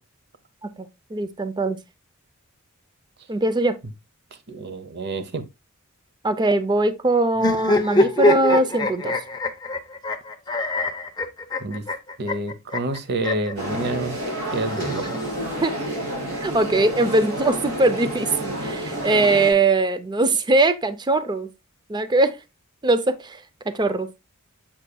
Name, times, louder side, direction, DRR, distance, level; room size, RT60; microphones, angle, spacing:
voice 1, 0.8-1.8 3.3-3.7 6.2-9.2 15.6-15.7 16.4-21.5 21.9-22.4 22.8-23.4 23.7-24.1, right 2 dB, 20° right, 0.5 m, -21 dB
voice 2, 4.5-5.4 11.6-11.8 12.2-14.1 14.5-15.1, right 2 dB, 50° right, 0.8 m, -28 dB
sound 1, 7.3-13.5 14.5-15.6, left 2 dB, 20° left, 0.8 m, -24 dB
sound 2, 13.6-19.5, right 1 dB, 75° right, 4.6 m, -29 dB
7.3 x 6.8 x 2.3 m
head